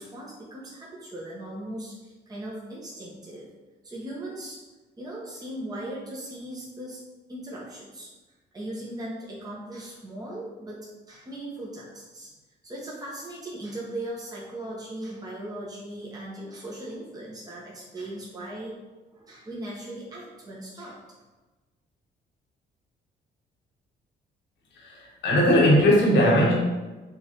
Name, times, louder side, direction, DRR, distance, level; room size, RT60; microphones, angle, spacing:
voice 1, 0.0-3.5 3.8-4.6 5.0-7.0 7.3-8.1 8.5-12.3 12.6-18.8 19.1-21.0, right 1 dB, 20° right, -6 dB, 1.0 m, -38 dB
voice 2, 24.8-26.5, equal, 75° left, -4 dB, 1.3 m, -19 dB
5.3 x 2.7 x 2.9 m, 1.2 s
cardioid pair, 85°, 19 cm